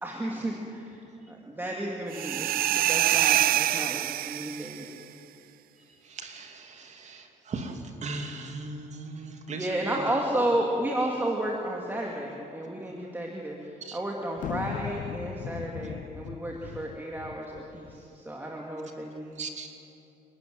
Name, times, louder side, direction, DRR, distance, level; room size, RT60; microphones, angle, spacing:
voice 1, 0.0-4.9 9.5-19.4, right 1 dB, 10° right, -1 dB, 2.4 m, -32 dB
sound 1, 2.1-4.8, right 13 dB, 60° right, 0.5 m, -25 dB
voice 2, 6.0-10.0 13.8-14.0 19.4-19.7, right 3 dB, 45° right, 4 dB, 2.6 m, -38 dB
sound 2, 14.4-18.0, left 10 dB, 50° left, 0.6 m, -38 dB
28.5 x 12.5 x 9.4 m, 2.8 s
cardioid pair, 110°, 17 cm